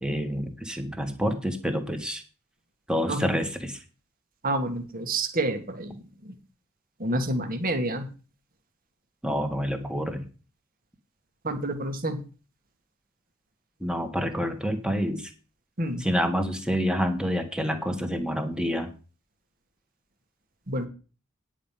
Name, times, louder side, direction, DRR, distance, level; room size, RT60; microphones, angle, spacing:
voice 1, 0.0-2.2 2.9-3.8 9.2-10.2 13.8-15.3 16.0-18.9, equal, 5° right, 6 dB, 1.5 m, -28 dB
voice 2, 4.4-6.4 7.0-8.1 11.4-12.2 15.8-16.1 20.7-20.9, right 1 dB, 45° right, 6 dB, 1.8 m, -29 dB
10.0 x 5.1 x 7.4 m, 0.35 s
head